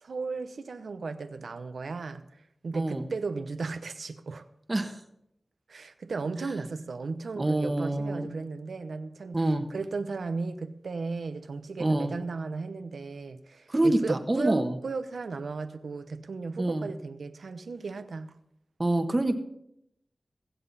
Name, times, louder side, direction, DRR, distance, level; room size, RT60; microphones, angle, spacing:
voice 1, 0.0-2.2 2.6-4.5 5.7-9.4 9.7-18.3, right 4 dB, 85° right, 0.9 m, -35 dB
voice 2, 2.7-3.0 4.7-5.0 7.3-8.3 9.3-9.6 11.8-12.1 13.7-14.8 16.6-16.9 18.8-19.4, right 1 dB, 35° right, 1.3 m, -26 dB
21.5 x 7.8 x 4.1 m
cardioid pair, 45°, 0 cm